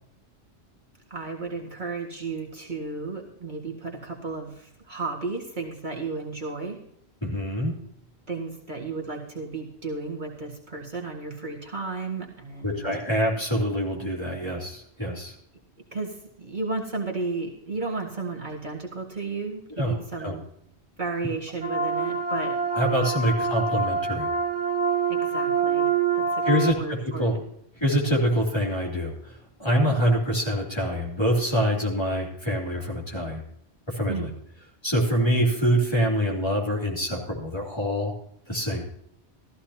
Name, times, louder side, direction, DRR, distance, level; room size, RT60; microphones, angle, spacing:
voice 1, 1.1-6.8 8.3-12.9 15.9-20.5 21.0-22.6 25.1-27.4 34.1-34.3, right 3 dB, 45° right, -1 dB, 2.1 m, -33 dB
voice 2, 7.2-7.7 12.6-15.3 19.8-20.3 22.7-24.3 26.4-27.3 27.8-33.4 33.9-34.3 34.8-38.1 38.5-38.8, equal, 25° left, -3 dB, 3.1 m, -25 dB
sound 1, 21.6-26.7, right 5 dB, 85° right, 2.5 m, -25 dB
14.5 x 14.5 x 2.9 m, 0.73 s
omnidirectional pair, 1.1 m